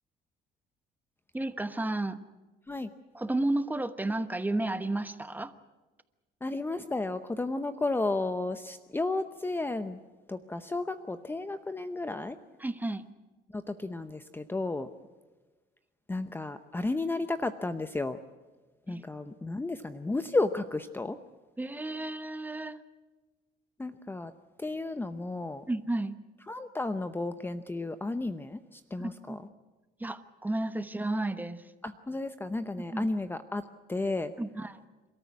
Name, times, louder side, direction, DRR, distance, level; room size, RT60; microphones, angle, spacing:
voice 1, 1.3-2.2 3.1-5.5 12.6-13.0 18.9-19.0 21.6-22.8 25.7-26.2 29.0-29.4 30.0-31.6 32.8-33.1 34.4-34.8, right 2 dB, 10° right, 11 dB, 1.1 m, -32 dB
voice 2, 6.4-10.0 10.3-12.4 13.5-14.9 16.1-18.2 18.9-21.2 23.8-24.3 24.6-25.6 26.5-29.4 31.8-34.3, left 2 dB, 15° left, 10 dB, 0.8 m, -33 dB
28.0 x 14.0 x 9.5 m, 1.2 s
cardioid pair, 110°, 17 cm